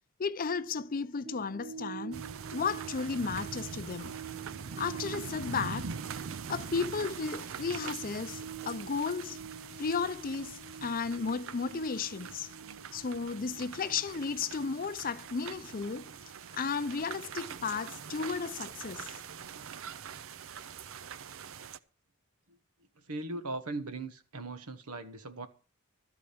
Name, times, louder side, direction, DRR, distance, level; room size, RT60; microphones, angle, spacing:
voice 1, 0.2-4.1 4.8-5.9 6.5-9.4 9.8-12.5 12.9-16.1 16.5-19.2, left 5 dB, 40° left, 0.5 m, -34 dB
sound 1, 1.2-17.8 18.1-18.2, right 8 dB, 30° right, 1.7 m, -48 dB
sound 2, 2.1-21.8, right 6 dB, 65° right, 0.6 m, -43 dB
voice 2, 23.1-25.5, right 2 dB, 85° right, 1.3 m, -39 dB
13.0 x 5.0 x 8.5 m
head